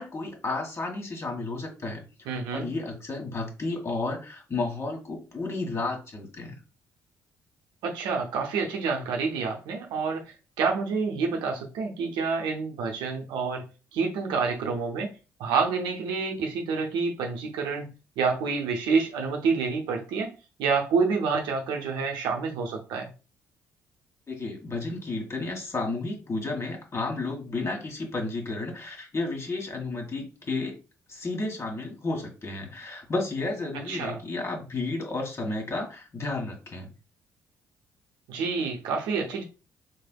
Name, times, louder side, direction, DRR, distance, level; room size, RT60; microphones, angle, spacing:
voice 1, 0.0-6.6 24.3-30.8 31.1-36.9, left 3 dB, 35° left, 1.7 m, -32 dB
voice 2, 2.3-2.7 7.8-13.6 13.9-15.1 15.4-20.3 20.6-23.1 33.9-34.2 38.3-39.4, right 5 dB, 65° right, 0.7 m, -28 dB
4.4 x 3.2 x 2.3 m
hypercardioid pair, 45°, 8 cm